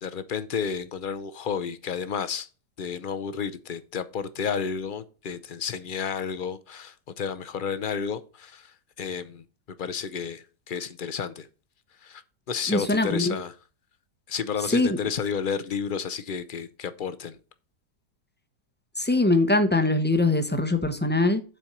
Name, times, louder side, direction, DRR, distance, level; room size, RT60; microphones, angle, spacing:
voice 1, 0.0-2.5 2.8-9.4 9.8-11.5 12.0-12.2 12.5-13.5 14.3-17.4, left 6 dB, 50° left, 0.6 m, -31 dB
voice 2, 12.7-13.4 14.7-14.9 19.0-21.4, left 2 dB, 10° left, 0.6 m, -22 dB
7.7 x 4.5 x 6.5 m
omnidirectional pair, 1.7 m